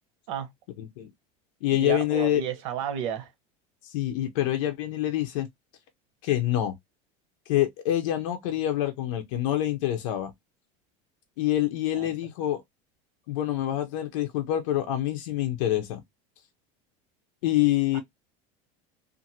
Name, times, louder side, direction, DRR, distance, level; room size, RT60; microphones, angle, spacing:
voice 1, 0.8-1.1 1.6-2.4 3.8-5.5 6.2-6.8 7.5-10.3 11.4-12.6 13.3-16.0 17.4-18.0, left 13 dB, 90° left, 0.6 m, -26 dB
voice 2, 1.7-3.3 11.9-12.1 17.9-18.0, right 9 dB, 75° right, 1.0 m, -32 dB
2.5 x 2.5 x 2.7 m
cardioid pair, 175°, 17 cm